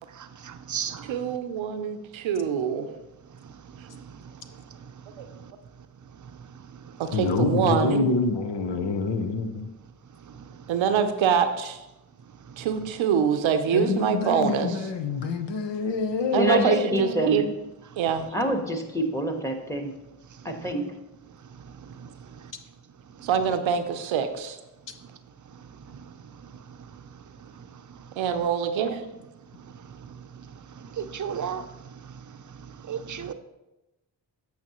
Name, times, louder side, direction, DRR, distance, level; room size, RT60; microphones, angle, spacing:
voice 1, 0.4-1.1 22.0-22.1 25.9-26.0 30.1-30.2 31.0-31.6 32.9-33.3, right 7 dB, 40° right, 10 dB, 0.6 m, -33 dB
voice 2, 1.1-2.9 5.2-5.3 7.0-8.1 10.7-11.8 12.6-14.8 16.3-17.5 18.0-18.3 23.2-24.6 28.2-29.1, right 7 dB, 80° right, 9 dB, 0.7 m, -25 dB
voice 3, 7.1-9.7 13.7-17.2, left 4 dB, 65° left, 7 dB, 0.8 m, -26 dB
voice 4, 16.3-17.5 18.3-19.9 20.4-20.9, right 1 dB, 5° left, 4 dB, 1.3 m, -27 dB
8.5 x 5.7 x 3.0 m, 0.99 s
supercardioid pair, 40°, 46 cm